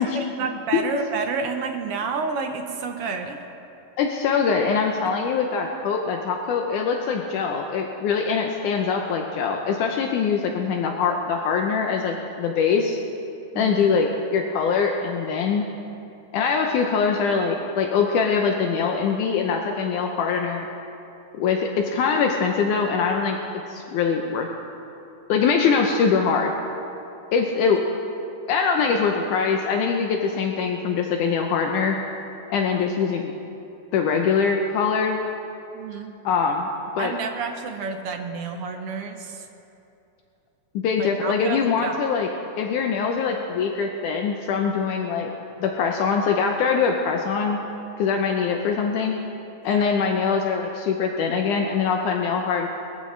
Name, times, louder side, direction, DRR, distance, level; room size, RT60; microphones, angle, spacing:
voice 1, 0.0-3.4 13.5-13.9 35.7-36.1 37.0-39.5 41.0-42.0 49.7-50.0, right 4 dB, 70° right, 4 dB, 1.5 m, -30 dB
voice 2, 4.0-13.0 13.6-15.6 16.3-20.7 21.4-23.4 23.7-24.5 25.3-26.5 27.3-27.8 28.5-32.0 32.5-33.3 33.9-35.2 36.2-36.7 37.0-37.2 40.7-42.3 42.6-45.3 45.6-47.6 48.0-49.1 49.6-52.7, left 5 dB, 75° left, 2 dB, 2.2 m, -23 dB
22.0 x 14.5 x 3.3 m, 2.8 s
omnidirectional pair, 3.7 m